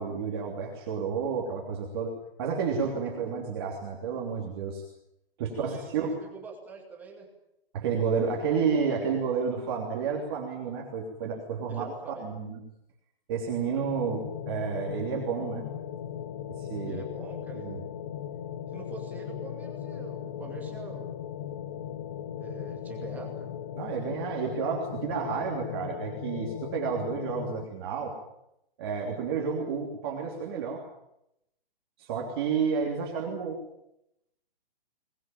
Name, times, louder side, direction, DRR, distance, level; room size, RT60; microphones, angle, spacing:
voice 1, 0.0-2.1 2.4-4.8 5.4-6.2 7.7-11.9 12.2-12.6 13.3-15.6 16.6-17.0 17.5-17.8 23.8-28.2 28.8-30.8 32.0-33.6, right 6 dB, 25° right, -1 dB, 3.1 m, -31 dB
voice 2, 5.5-7.3 11.7-12.3 16.8-17.8 18.7-21.1 22.3-23.5, right 4 dB, 5° right, 1 dB, 2.3 m, -44 dB
sound 1, 13.8-27.7, left 9 dB, 25° left, 0.9 m, -38 dB
21.5 x 20.5 x 9.1 m, 0.82 s
hypercardioid pair, 175°, 30 cm